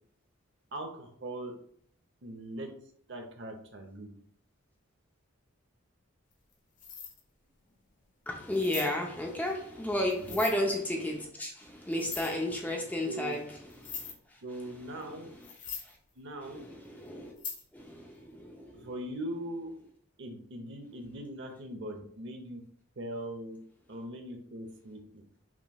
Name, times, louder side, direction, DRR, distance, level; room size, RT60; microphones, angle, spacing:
voice 1, 0.7-1.5 2.2-2.7 3.1-4.1 10.2-10.4 13.0-13.4 14.4-15.3 16.2-16.6 18.7-19.7 20.2-22.6 23.0-23.6 23.9-25.2, right 1 dB, 60° right, 4 dB, 0.8 m, -40 dB
sound 1, 6.3-6.5 6.8-7.2 7.7-7.8 8.5-8.9 10.1-10.6 11.9-12.3 13.3-13.4 13.7-14.1 15.0-15.1 15.4-15.9 17.4-17.6, left 6 dB, 40° left, 0.9 m, -41 dB
voice 2, 8.3-15.5 15.8-16.0 16.4-17.4 17.7-18.9, left 1 dB, 10° left, 0 dB, 0.6 m, -34 dB
6.0 x 3.1 x 2.3 m, 0.62 s
head